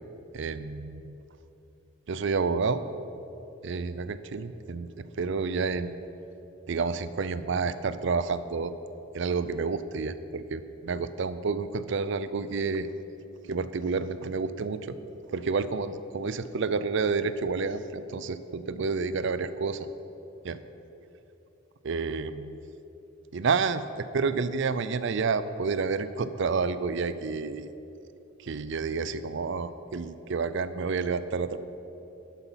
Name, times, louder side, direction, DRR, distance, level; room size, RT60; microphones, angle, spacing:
voice 1, 0.3-1.1 2.1-2.8 3.6-6.0 6.7-8.7 9.1-12.9 13.5-15.0 15.3-19.9 20.4-20.6 21.8-22.6 23.3-27.7 28.4-31.6, right 4 dB, 60° right, 13 dB, 0.5 m, -29 dB
11.5 x 8.2 x 5.7 m, 3.0 s
head